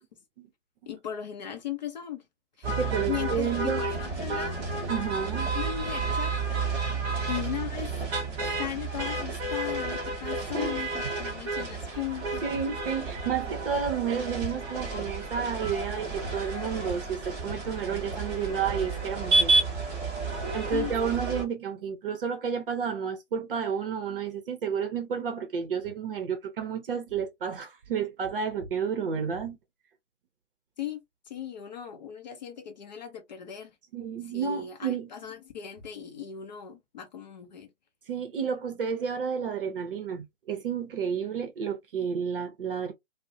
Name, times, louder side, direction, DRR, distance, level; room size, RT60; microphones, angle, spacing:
voice 1, 0.9-2.2 2.6-2.8 3.0-4.6 5.5-6.5 7.3-8.0 8.6-12.4 20.7-20.9 30.8-31.0 31.3-33.7 34.3-37.7, left 10 dB, 40° left, 0.5 m, -37 dB
sound 1, 2.6-21.4, right 3 dB, 15° right, 0.7 m, -31 dB
voice 2, 2.8-3.8 4.9-5.5 10.5-10.9 12.4-19.5 20.5-29.6 33.9-35.1 38.1-42.9, right 7 dB, 50° right, 0.7 m, -31 dB
2.3 x 2.0 x 2.6 m
figure-of-eight pair, 130°, 36 cm